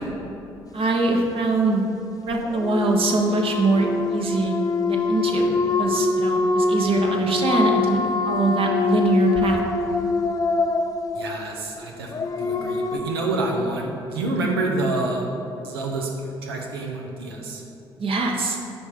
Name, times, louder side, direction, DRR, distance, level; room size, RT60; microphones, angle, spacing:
voice 1, 0.7-1.8 2.3-4.5 4.9-9.6 18.0-18.6, right 3 dB, 50° right, 1 dB, 1.3 m, -23 dB
sound 1, 2.4-13.0, left 3 dB, 30° left, 0.6 m, -24 dB
voice 2, 11.1-15.3 15.6-17.6, right 2 dB, 80° right, 1 dB, 0.9 m, -27 dB
10.5 x 3.6 x 5.2 m, 2.8 s
figure-of-eight pair, 50°, 12 cm